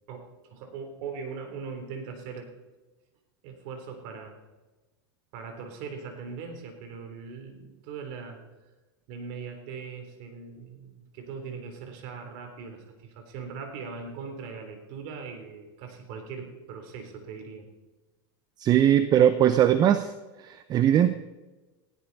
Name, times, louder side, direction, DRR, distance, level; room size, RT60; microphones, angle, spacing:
voice 1, 0.0-2.5 3.4-4.4 5.3-8.4 9.1-17.7, right 5 dB, 55° right, 5 dB, 3.7 m, -40 dB
voice 2, 18.6-20.1 20.4-21.1, right 10 dB, 30° right, 11 dB, 0.7 m, -20 dB
19.5 x 16.0 x 4.2 m, 1.2 s
supercardioid pair, 125°, 13 cm